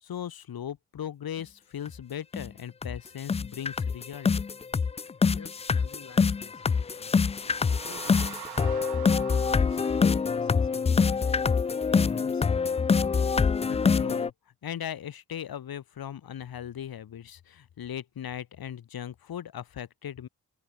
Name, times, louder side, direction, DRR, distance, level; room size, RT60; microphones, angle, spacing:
voice 1, 0.0-4.3 13.7-14.3 14.6-20.3, left 9 dB, 70° left, 1.8 m, -38 dB
sound 1, 1.9-2.0 2.3-2.5 2.8-3.0 3.3-14.3, left 5 dB, 20° left, 0.3 m, -25 dB
voice 2, 5.3-7.2 7.9-11.3 11.9-12.7, left 5 dB, 45° left, 2.9 m, -50 dB
sound 2, 7.3-10.8, right 16 dB, 85° right, 0.7 m, -44 dB
supercardioid pair, 45°, 37 cm